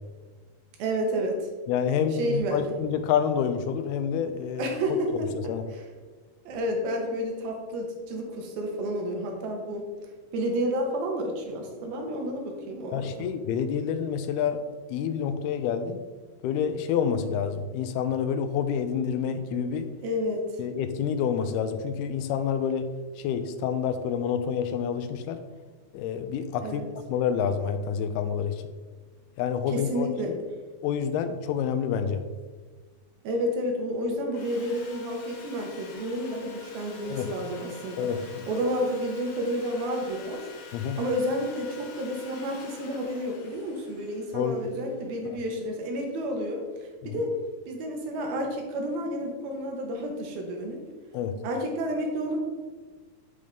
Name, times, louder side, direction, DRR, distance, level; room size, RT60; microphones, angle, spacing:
voice 1, 0.8-1.5 2.1-2.6 4.6-5.3 5.7-5.8 6.5-9.8 10.3-13.3 20.0-20.5 26.6-26.9 29.7-30.3 33.2-38.1 38.5-40.4 41.0-47.3 47.7-50.8 51.4-52.4, equal, 75° right, 1 dB, 2.9 m, -30 dB
voice 2, 1.7-4.8 5.5-5.6 12.9-14.6 14.9-16.0 16.4-19.9 20.6-22.9 23.2-25.4 25.9-26.8 27.1-28.6 29.4-30.4 30.8-32.2 37.1-37.3 38.0-38.5 40.7-41.0 44.3-44.6 45.3-45.4 47.0-47.2 51.1-51.3, left 7 dB, 85° left, 9 dB, 2.5 m, -28 dB
Sawing, 34.3-45.4, left 4 dB, 65° left, 1.6 m, -47 dB
10.0 x 5.3 x 3.5 m, 1.4 s
omnidirectional pair, 4.5 m